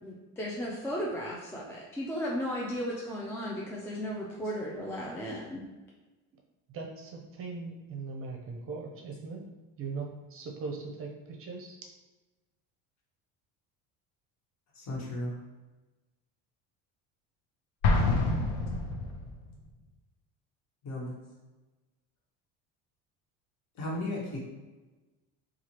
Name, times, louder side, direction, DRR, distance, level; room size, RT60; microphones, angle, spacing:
voice 1, 0.0-5.6, equal, 10° left, -4 dB, 0.4 m, -35 dB
voice 2, 6.7-9.4 9.8-11.8, right 4 dB, 40° right, 1 dB, 0.7 m, -39 dB
voice 3, 14.7-15.3 20.8-21.2 23.8-24.4, left 1 dB, 55° left, -3 dB, 1.3 m, -35 dB
Explosion, 17.8-19.5, left 3 dB, 70° left, 0.7 m, -27 dB
4.3 x 2.4 x 2.9 m, 1.2 s
cardioid pair, 125°, 33 cm